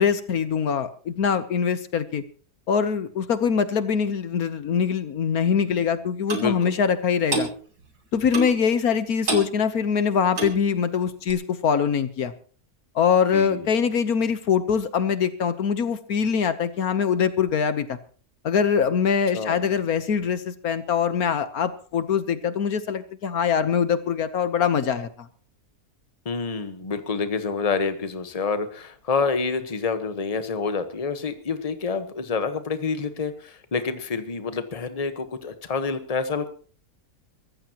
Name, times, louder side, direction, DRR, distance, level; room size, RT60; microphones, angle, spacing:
voice 1, 0.0-2.2 2.7-7.5 8.1-12.3 12.9-18.0 18.4-25.3, left 7 dB, 70° left, 11 dB, 1.5 m, -23 dB
voice 2, 6.3-6.8 13.3-13.7 19.3-19.6 26.2-36.5, left 4 dB, 25° left, 9 dB, 1.2 m, -28 dB
Clock, 6.3-6.5 7.3-7.5 8.3-8.6 9.3-9.5 10.3-10.6 11.3-11.4, right 3 dB, 90° right, 3.3 m, -27 dB
23.5 x 14.5 x 3.0 m, 0.42 s
omnidirectional pair, 1.6 m